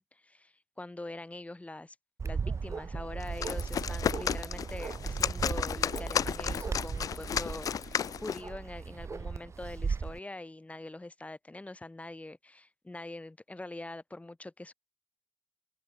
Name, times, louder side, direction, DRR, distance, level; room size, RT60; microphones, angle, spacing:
voice 1, 0.0-2.0 2.2-14.7, left 2 dB, 20° left, 3.5 m, -44 dB
Bark, 2.2-10.2, right 5 dB, 50° right, 1.1 m, -37 dB
sound 1, 3.2-8.5, left 8 dB, 70° left, 1.0 m, -33 dB
open air
supercardioid pair, 45°, 6 cm